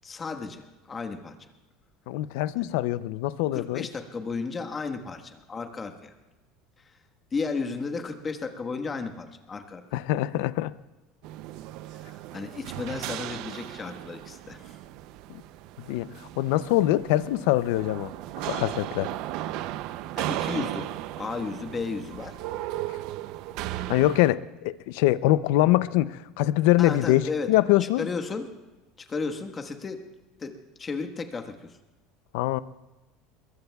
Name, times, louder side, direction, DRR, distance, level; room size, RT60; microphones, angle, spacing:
voice 1, 0.0-1.4 2.6-2.7 3.5-6.1 7.3-9.8 12.0-14.8 20.1-22.4 26.8-27.5 27.8-28.5 29.0-30.0 30.4-31.7, left 4 dB, 25° left, 6 dB, 1.4 m, -34 dB
voice 2, 2.1-3.9 9.9-10.7 15.3-15.4 15.9-18.1 18.4-19.1 23.9-28.1 32.3-32.6, left 15 dB, 75° left, 16 dB, 0.5 m, -24 dB
sound 1, 11.2-24.3, right 14 dB, 65° right, 0.6 m, -36 dB
22.0 x 22.0 x 2.3 m, 1.1 s
supercardioid pair, 135°, 0 cm